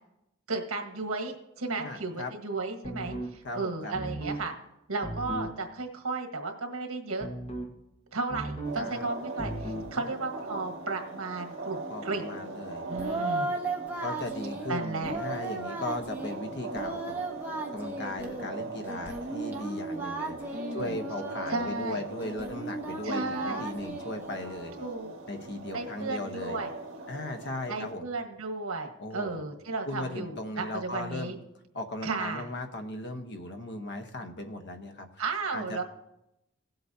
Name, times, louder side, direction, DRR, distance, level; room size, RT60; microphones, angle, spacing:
voice 1, 0.5-4.5 4.9-7.3 8.1-12.2 12.9-13.5 14.7-15.1 20.5-21.0 21.5-22.0 23.0-23.7 24.8-25.1 25.7-26.7 27.7-31.4 32.0-32.5 35.2-35.8, right 3 dB, 75° right, 3 dB, 1.5 m, -34 dB
voice 2, 1.8-2.3 3.4-3.9 8.8-9.1 10.0-10.1 11.9-13.3 14.0-17.2 17.7-20.3 20.7-24.7 25.3-26.6 27.1-28.1 29.0-29.4 29.9-31.3 31.7-35.2 35.5-35.8, left 1 dB, 55° left, 6 dB, 1.0 m, -37 dB
sound 1, 2.8-3.3 3.9-4.4 5.0-5.5 7.2-7.7 8.3-8.8 9.4-9.9, right 1 dB, 30° left, 1.4 m, -36 dB
sound 2, 8.6-27.9, right 3 dB, 60° right, 2.0 m, -41 dB
Singing, 12.9-14.7 15.0-16.4 16.7-18.5 18.9-21.7 22.2-24.9, right 2 dB, 10° right, 1.2 m, -36 dB
17.5 x 7.8 x 2.8 m, 0.85 s
head